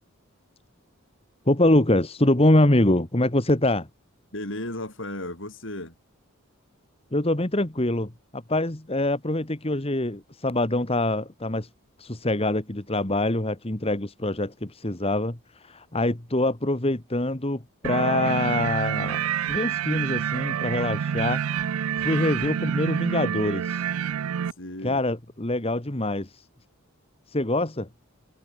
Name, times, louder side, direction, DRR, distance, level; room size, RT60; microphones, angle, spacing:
voice 1, 1.5-3.9 7.1-11.7 12.0-21.4 22.0-23.8 24.8-26.4 27.3-27.9, left 1 dB, 30° left, 1.7 m, -24 dB
voice 2, 4.3-6.0 22.3-22.5 24.6-25.0, left 1 dB, 60° left, 5.5 m, -35 dB
sound 1, 17.8-24.5, right 8 dB, 85° right, 0.4 m, -27 dB
head